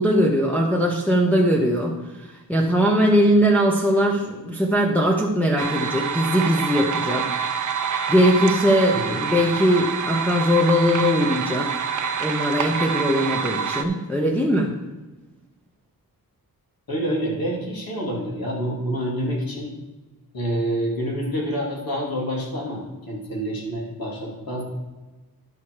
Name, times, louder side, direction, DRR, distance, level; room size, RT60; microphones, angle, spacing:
voice 1, 0.0-7.3 8.1-11.7 12.2-14.7, equal, 5° left, -2 dB, 0.9 m, -20 dB
sound 1, 5.6-13.8, right 6 dB, 55° right, 0.7 m, -27 dB
voice 2, 16.9-19.7 20.3-24.6, equal, 70° left, -3 dB, 3.1 m, -27 dB
11.5 x 5.8 x 4.8 m, 1.1 s
wide cardioid pair, 145°, 37 cm